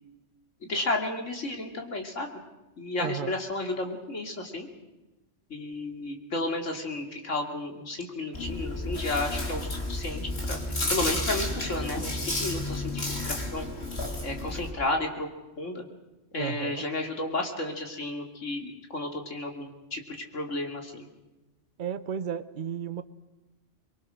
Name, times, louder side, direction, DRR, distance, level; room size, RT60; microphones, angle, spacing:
voice 1, 0.6-2.3 2.8-4.7 5.5-10.6 10.9-13.7 14.2-15.3 15.6-15.8 16.3-21.1, left 2 dB, 90° left, 3 dB, 3.0 m, -32 dB
voice 2, 3.0-3.3 16.4-16.8 21.8-23.0, right 8 dB, 45° right, 12 dB, 1.0 m, -33 dB
Chewing mastication, 8.3-14.7, left 1 dB, 60° left, 3.7 m, -32 dB
24.5 x 22.5 x 6.4 m, 1.1 s
omnidirectional pair, 1.2 m